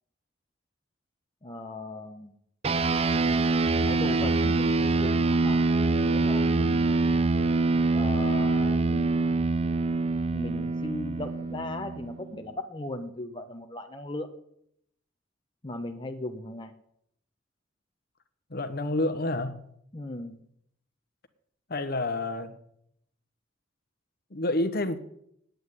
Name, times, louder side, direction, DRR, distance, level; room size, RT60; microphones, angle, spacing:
voice 1, 1.4-2.3 3.8-7.2 7.9-9.3 10.3-14.3 15.6-16.7 19.9-20.4, left 2 dB, 25° left, 4 dB, 0.9 m, -38 dB
sound 1, 2.6-12.4, right 3 dB, 30° right, 0.4 m, -25 dB
voice 2, 18.5-19.6 21.7-22.5 24.3-25.0, left 2 dB, 50° left, 10 dB, 1.1 m, -28 dB
9.2 x 9.0 x 9.6 m, 0.73 s
head